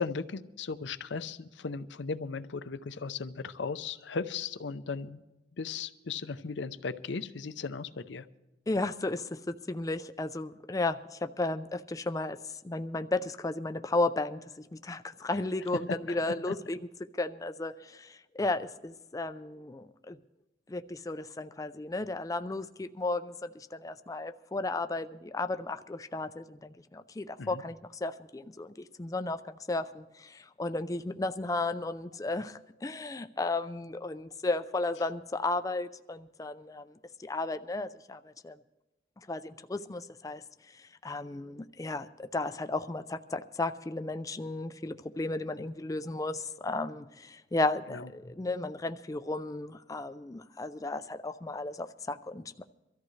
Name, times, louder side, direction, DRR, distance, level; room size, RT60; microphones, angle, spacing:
voice 1, 0.0-5.2 5.6-8.3 16.1-16.2 16.5-16.6 27.4-27.6 47.9-48.1, left 5 dB, 80° left, 12 dB, 0.6 m, -36 dB
voice 2, 8.7-16.8 17.2-20.2 20.7-38.6 39.3-40.4 40.7-52.6, left 2 dB, 20° left, 10 dB, 0.4 m, -34 dB
23.5 x 13.5 x 3.2 m, 1.0 s
head